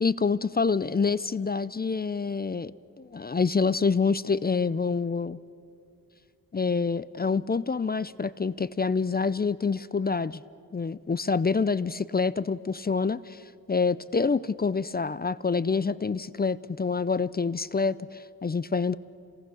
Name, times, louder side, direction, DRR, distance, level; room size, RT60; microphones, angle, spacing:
voice 1, 0.0-2.7 3.0-5.4 6.5-10.4 10.7-13.4 13.7-19.0, left 4 dB, 25° left, 18 dB, 0.4 m, -27 dB
27.0 x 18.5 x 6.3 m, 2.6 s
cardioid pair, 65°, 38 cm